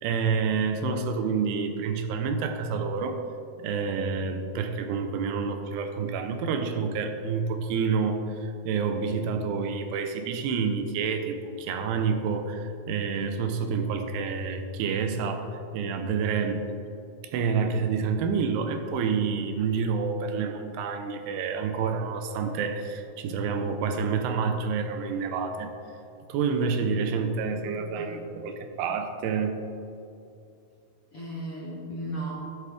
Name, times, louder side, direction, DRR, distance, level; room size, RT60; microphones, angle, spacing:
voice 1, 0.0-3.2 3.6-16.7 17.2-25.7 26.3-29.6, right 5 dB, 85° right, 7 dB, 2.9 m, -28 dB
voice 2, 27.5-28.3 31.1-32.3, right 1 dB, 55° left, -6 dB, 1.6 m, -37 dB
12.5 x 10.0 x 3.5 m, 2.6 s
omnidirectional pair, 4.6 m